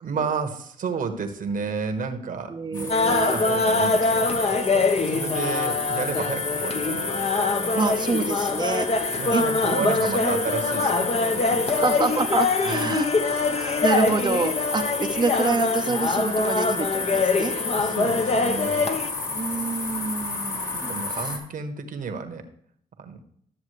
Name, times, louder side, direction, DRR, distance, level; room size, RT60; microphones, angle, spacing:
voice 1, 0.0-7.5 9.2-11.8 12.6-13.0 17.8-18.9 20.9-22.4 23.0-23.2, right 5 dB, 60° right, 7 dB, 1.4 m, -32 dB
voice 2, 2.5-3.4 7.7-8.9 9.3-9.4 9.8-10.1 11.8-13.1 13.5-17.5 19.3-21.3, right 4 dB, 30° right, 3 dB, 0.8 m, -27 dB
sound 1, 2.7-21.4, left 3 dB, 55° left, 2.5 m, -32 dB
sound 2, 2.9-19.1, left 3 dB, 40° left, 1.1 m, -24 dB
12.5 x 7.2 x 3.2 m, 0.66 s
supercardioid pair, 60°, 16 cm